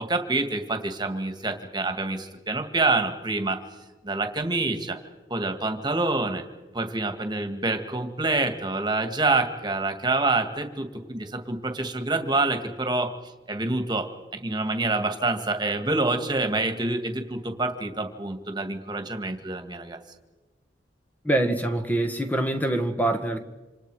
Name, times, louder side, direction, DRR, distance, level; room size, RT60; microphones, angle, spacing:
voice 1, 0.0-3.6 4.0-5.0 5.3-6.4 6.7-13.1 13.5-20.0, right 2 dB, 25° right, 2.1 m, -27 dB
voice 2, 21.2-23.4, right 1 dB, 10° left, 1.6 m, -24 dB
28.0 x 27.0 x 5.0 m
head